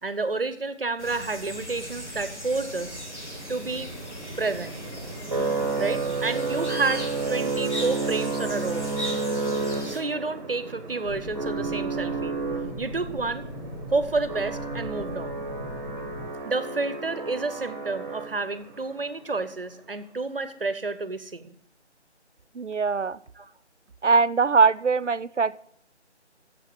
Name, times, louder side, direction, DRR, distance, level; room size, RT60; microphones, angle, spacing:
voice 1, 0.0-3.0 3.5-3.9 4.4-4.8 5.8-8.9 9.8-12.4 12.8-13.5 13.9-15.4 16.4-21.6 23.4-23.5, right 3 dB, 55° right, 13 dB, 1.0 m, -30 dB
sound 1, 1.0-10.0, equal, 75° left, 3.5 m, -38 dB
sound 2, 2.5-18.7, right 3 dB, 20° right, 1.4 m, -32 dB
sound 3, 11.0-16.3, equal, 25° left, 1.3 m, -38 dB
voice 2, 22.6-23.2 24.0-25.6, right 5 dB, 85° right, 15 dB, 0.7 m, -21 dB
11.5 x 7.7 x 6.2 m, 0.65 s
figure-of-eight pair, 160°, 35 cm